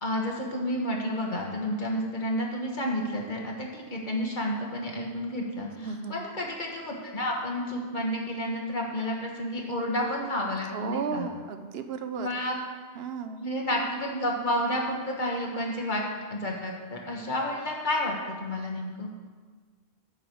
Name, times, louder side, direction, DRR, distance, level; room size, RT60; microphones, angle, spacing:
voice 1, 0.0-11.3 12.2-12.6 13.4-16.0 16.3-19.1, left 1 dB, 50° left, -1 dB, 1.6 m, -30 dB
voice 2, 5.8-6.2 10.7-12.3 13.0-13.4, right 6 dB, 70° right, 8 dB, 0.9 m, -34 dB
9.2 x 5.1 x 7.7 m, 1.5 s
omnidirectional pair, 1.1 m